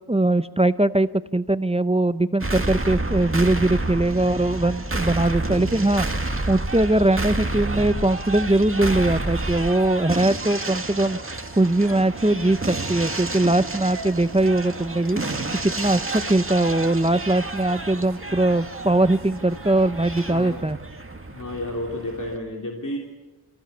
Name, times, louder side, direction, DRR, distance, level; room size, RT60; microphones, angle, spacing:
voice 1, 0.0-6.1 6.5-11.2 11.5-15.2 15.6-20.8, right 2 dB, 15° right, 13 dB, 0.7 m, -21 dB
sound 1, 2.4-22.4, right 2 dB, 30° right, 2.1 m, -30 dB
sound 2, 11.6-20.6, right 4 dB, 70° right, 2.0 m, -45 dB
voice 2, 20.3-20.6 21.3-23.0, left 1 dB, 50° left, 0 dB, 3.3 m, -31 dB
29.0 x 16.5 x 6.9 m, 1.2 s
wide cardioid pair, 50°, 40 cm